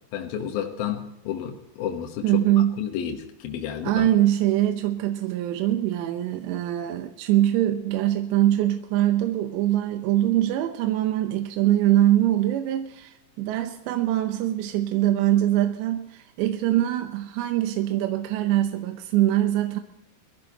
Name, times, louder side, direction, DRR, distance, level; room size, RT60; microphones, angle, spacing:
voice 1, 0.1-4.1, left 9 dB, 70° left, 2.5 m, -31 dB
voice 2, 2.2-2.8 3.8-19.8, right 13 dB, 75° right, 2.8 m, -23 dB
22.5 x 14.5 x 2.9 m
omnidirectional pair, 5.6 m